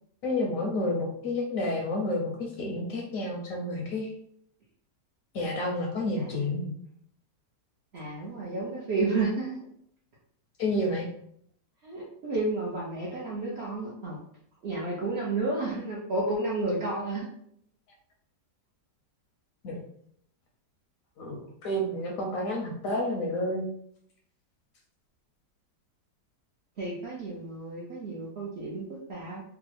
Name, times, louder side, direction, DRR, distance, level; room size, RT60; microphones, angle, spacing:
voice 1, 0.2-4.1 5.3-6.7 10.6-11.1 19.6-19.8 21.2-23.7, left 1 dB, 70° left, 0 dB, 0.9 m, -30 dB
voice 2, 7.9-9.6 11.8-14.2 14.6-17.3 26.8-29.4, right 2 dB, 65° right, -5 dB, 0.6 m, -31 dB
3.4 x 2.0 x 3.2 m, 0.67 s
omnidirectional pair, 1.8 m